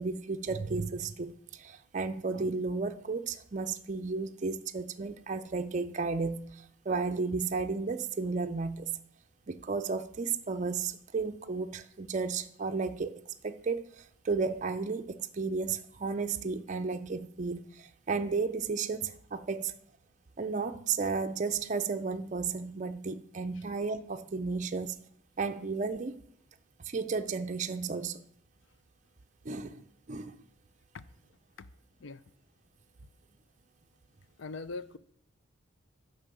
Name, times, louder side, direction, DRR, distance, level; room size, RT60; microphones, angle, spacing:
voice 1, 0.0-8.9 9.5-13.1 13.4-19.7 20.4-25.0 25.4-26.2 26.9-28.2 29.4-29.8 30.1-30.4, right 4 dB, 35° right, 0.5 m, -33 dB
voice 2, 34.4-35.0, left 3 dB, 60° left, 0.5 m, -41 dB
9.6 x 5.5 x 6.8 m
head